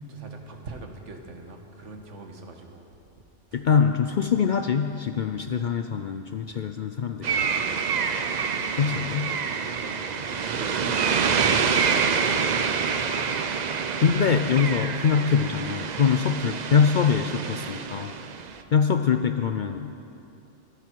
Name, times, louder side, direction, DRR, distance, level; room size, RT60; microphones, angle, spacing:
voice 1, 0.1-2.8 3.5-3.6 6.4-6.6 8.3-8.4 8.7-9.2 9.5-12.7 18.3-18.6, right 3 dB, 75° right, 4 dB, 1.6 m, -43 dB
voice 2, 3.5-7.4 8.8-9.4 14.0-18.1 18.7-19.9, left 6 dB, 55° left, 7 dB, 0.5 m, -23 dB
sound 1, 7.2-18.6, right 6 dB, 50° right, 0.6 m, -27 dB
23.0 x 10.5 x 4.6 m, 2.8 s
omnidirectional pair, 1.3 m